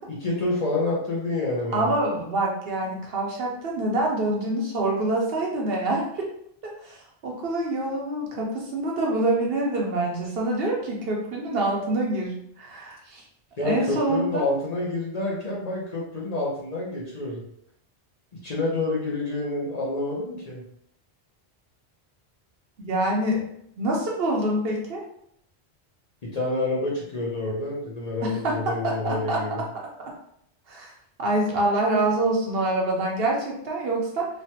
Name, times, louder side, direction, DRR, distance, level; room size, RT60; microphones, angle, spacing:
voice 1, 0.1-1.9 13.6-17.4 18.3-20.6 26.2-29.6, left 2 dB, 45° left, -5 dB, 0.7 m, -28 dB
voice 2, 1.7-6.3 6.6-13.2 13.6-14.4 22.8-23.4 23.8-25.0 28.2-29.4 30.7-30.9 31.2-34.3, right 2 dB, 65° right, -1 dB, 0.9 m, -26 dB
3.2 x 2.2 x 2.8 m, 0.71 s
omnidirectional pair, 1.1 m